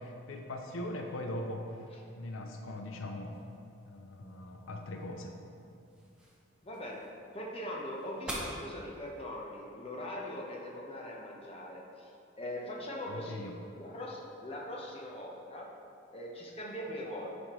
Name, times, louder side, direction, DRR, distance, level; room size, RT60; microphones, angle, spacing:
voice 1, 0.0-1.8 2.2-3.3 3.9-5.4 13.1-13.5, left 1 dB, 85° left, 3 dB, 0.6 m, -40 dB
sound 1, 3.3-9.2, right 1 dB, 5° right, 0.9 m, -47 dB
voice 2, 6.6-7.1 7.3-12.1 12.4-13.5 13.8-15.7 16.1-17.3, left 1 dB, 30° left, -2 dB, 0.9 m, -41 dB
9.7 x 5.2 x 3.1 m, 2.5 s
head